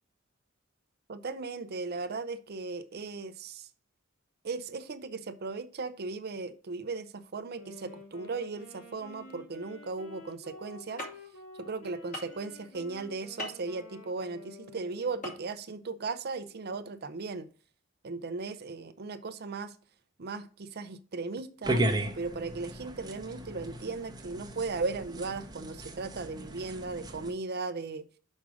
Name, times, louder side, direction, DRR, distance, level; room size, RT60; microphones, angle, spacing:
voice 1, 1.1-3.7 4.4-11.1 11.6-17.5 18.0-19.8 20.2-21.8 22.1-28.1, right 4 dB, 50° right, 0.6 m, -37 dB
Wind instrument woodwind instrument, 7.5-15.6, left 2 dB, 70° left, 2.2 m, -50 dB
sound 1, 11.0-11.1 12.1-12.4 13.4-13.6 15.2-15.4 15.7-15.8, left 1 dB, 40° left, 2.3 m, -37 dB
sound 2, 21.6-27.3, right 1 dB, 20° right, 0.9 m, -35 dB
6.2 x 5.4 x 4.8 m
head